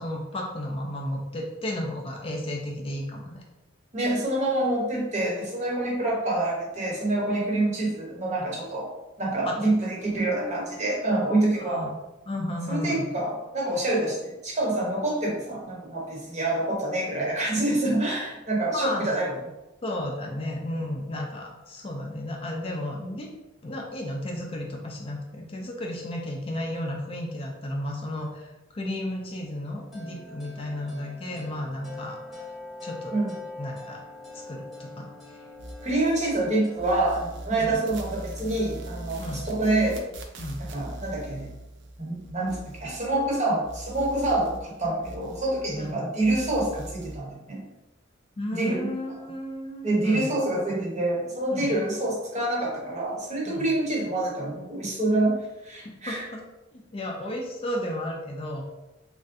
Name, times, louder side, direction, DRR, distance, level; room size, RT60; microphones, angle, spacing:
voice 1, 0.0-3.4 9.4-9.6 11.6-12.0 12.3-13.1 18.7-19.1 19.8-23.3 23.6-32.5 32.8-33.2 33.6-34.0 34.3-35.5 37.5-37.8 39.2-39.4 40.4-40.6 45.8-46.0 48.4-50.3 51.5-51.7 53.5-53.7 56.1-56.4 56.7-58.6, left 1 dB, 30° left, 0 dB, 0.4 m, -33 dB
voice 2, 3.9-8.9 9.2-11.9 12.7-19.3 33.1-33.3 35.8-40.0 40.6-41.5 42.0-47.7 48.5-48.9 49.8-56.2, right 2 dB, 35° right, -3 dB, 0.8 m, -26 dB
sound 1, 29.9-39.5, left 1 dB, ahead, 0.7 m, -43 dB
sound 2, 35.6-36.5 36.7-43.4 43.6-45.9 46.2-47.2, right 1 dB, 65° right, 0.4 m, -41 dB
3.3 x 2.5 x 2.6 m, 1.0 s
head